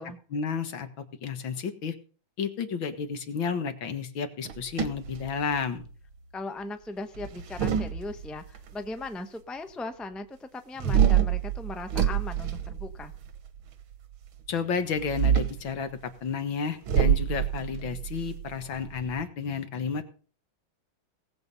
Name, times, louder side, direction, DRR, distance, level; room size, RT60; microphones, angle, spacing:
voice 1, 0.3-2.0 2.4-5.9 14.5-20.0, left 6 dB, 75° left, 10 dB, 2.2 m, -31 dB
sound 1, 4.4-5.8 7.1-8.6 10.8-13.4 14.9-15.7 16.9-19.2, right 9 dB, 90° right, 2.0 m, -26 dB
voice 2, 6.3-13.1, left 2 dB, ahead, 8 dB, 0.9 m, -38 dB
18.5 x 7.9 x 5.4 m, 0.39 s
omnidirectional pair, 2.2 m